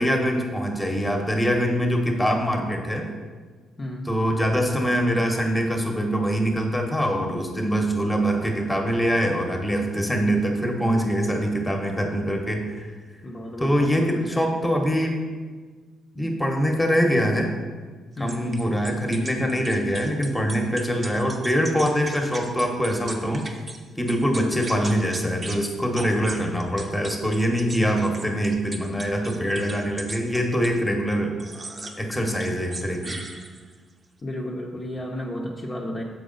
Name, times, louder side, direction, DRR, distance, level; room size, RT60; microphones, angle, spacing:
voice 1, 0.0-3.1 4.0-12.9 13.6-15.1 16.1-17.5 18.2-23.4 24.0-31.3 32.0-33.2, equal, 10° left, 2 dB, 1.0 m, -24 dB
voice 2, 3.8-4.1 13.2-14.4 18.2-18.6 34.2-36.0, left 1 dB, 30° left, -2 dB, 0.7 m, -33 dB
sound 1, 18.3-23.8 24.1-25.6 25.9-30.8 31.4-32.0 32.3-33.8, right 3 dB, 30° right, 0.7 m, -38 dB
6.6 x 4.7 x 3.9 m, 1.5 s
cardioid pair, 90°, 0 cm